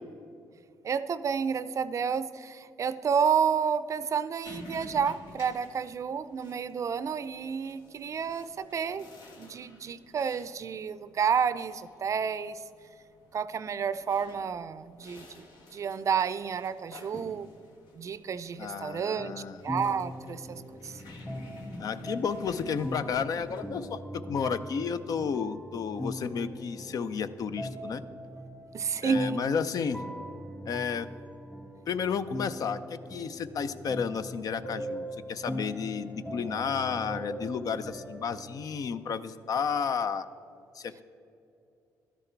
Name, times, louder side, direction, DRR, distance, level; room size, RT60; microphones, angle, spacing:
voice 1, 0.8-9.1 9.4-12.6 13.3-15.4 15.7-17.5 18.0-19.4 19.6-20.9 28.7-29.4, right 7 dB, 45° right, 15 dB, 0.5 m, -30 dB
sound 1, 4.4-23.6, left 2 dB, 80° left, 1.9 m, -50 dB
voice 2, 18.6-19.6 21.8-28.0 29.0-30.0 30.7-31.1 31.9-40.3 40.7-41.0, left 6 dB, 55° left, 12 dB, 0.6 m, -32 dB
sound 2, 19.2-38.4, equal, 15° left, 1.4 m, -41 dB
12.5 x 10.5 x 4.5 m, 2.6 s
cardioid pair, 95°, 7 cm